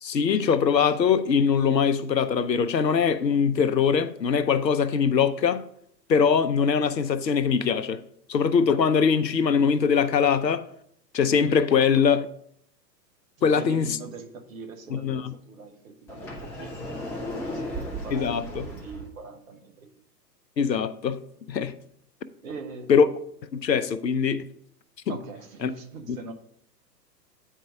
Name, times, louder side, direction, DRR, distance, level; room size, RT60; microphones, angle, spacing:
voice 1, 0.0-5.6 6.1-8.0 8.3-10.6 11.1-12.3 13.4-13.9 14.9-15.3 18.1-18.6 20.6-21.2 21.5-21.7 22.9-23.1 23.5-24.5 25.6-25.7 26.1-26.2, left 6 dB, 80° left, 0.7 m, -22 dB
voice 2, 13.4-20.0 22.4-22.9 25.1-26.3, right 4 dB, 50° right, 1.2 m, -42 dB
Sliding door, 16.1-19.1, equal, 5° left, 0.4 m, -35 dB
9.0 x 4.6 x 4.9 m
figure-of-eight pair, 105°, 50 cm